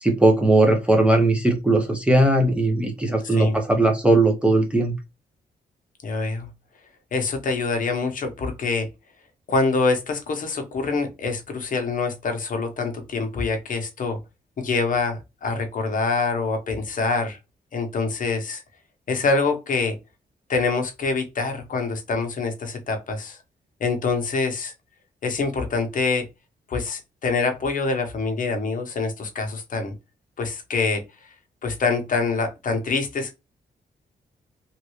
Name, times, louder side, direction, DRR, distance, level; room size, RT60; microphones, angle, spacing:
voice 1, 0.0-5.0, right 2 dB, 5° right, 3 dB, 0.7 m, -19 dB
voice 2, 6.0-6.5 7.1-8.9 9.5-14.2 14.6-17.4 17.7-18.6 19.1-20.0 20.5-23.4 23.8-24.7 25.2-26.3 26.7-29.9 30.4-31.0 31.6-33.3, left 4 dB, 55° left, 5 dB, 0.9 m, -25 dB
3.1 x 2.6 x 3.1 m, 0.24 s
cardioid pair, 105°, 16 cm